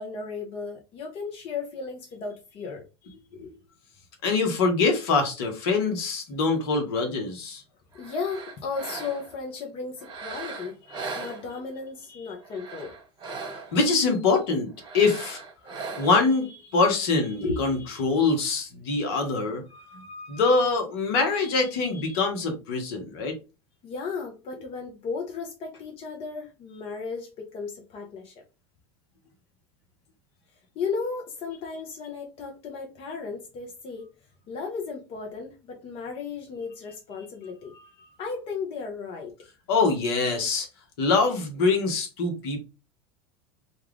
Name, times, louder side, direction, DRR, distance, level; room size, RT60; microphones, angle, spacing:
voice 1, 0.0-2.8 7.9-10.8 11.2-13.0 23.8-28.4 30.7-34.1 34.5-37.7 38.2-39.3, left 5 dB, 45° left, 0.7 m, -35 dB
voice 2, 4.2-7.6 13.7-14.7 14.9-15.4 16.0-23.3 39.7-40.7 41.0-42.6, left 4 dB, 65° left, 1.0 m, -24 dB
sound 1, 7.9-9.4 10.0-11.9 12.4-13.9 14.8-16.4, right 4 dB, 35° right, 1.0 m, -39 dB
2.4 x 2.3 x 3.4 m
hypercardioid pair, 85°, 14 cm